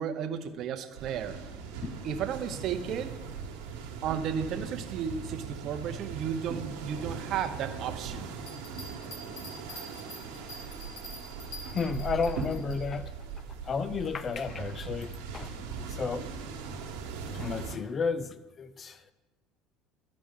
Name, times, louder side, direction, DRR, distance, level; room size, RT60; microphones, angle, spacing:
voice 1, 0.0-1.4 2.0-3.1 4.0-8.4, right 8 dB, 55° right, 7 dB, 0.8 m, -33 dB
sound 1, 0.9-17.8, right 5 dB, 85° right, 1.3 m, -40 dB
sound 2, 8.4-12.8, left 1 dB, 70° left, 2.2 m, -45 dB
voice 2, 11.6-13.1 13.6-15.5 15.8-16.3 17.3-19.0, left 5 dB, 35° left, 14 dB, 0.5 m, -32 dB
13.0 x 5.0 x 3.7 m, 1.2 s
supercardioid pair, 95°, 0 cm